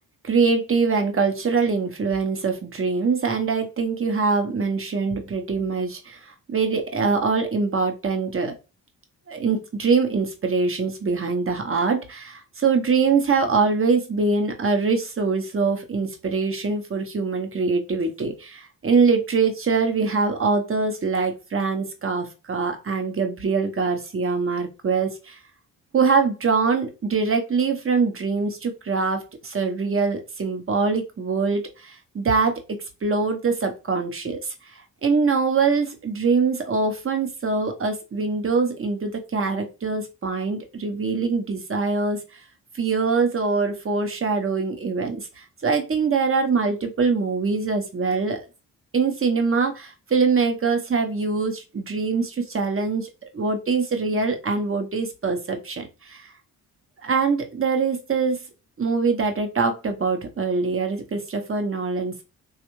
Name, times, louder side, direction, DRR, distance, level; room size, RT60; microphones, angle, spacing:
voice 1, 0.2-8.5 9.3-25.4 25.9-32.6 33.0-34.7 35.0-42.2 42.7-48.4 48.9-56.3 57.0-58.4 58.8-62.2, right 4 dB, 30° right, 6 dB, 0.9 m, -23 dB
3.3 x 2.4 x 3.0 m, 0.29 s
supercardioid pair, 50°, 43 cm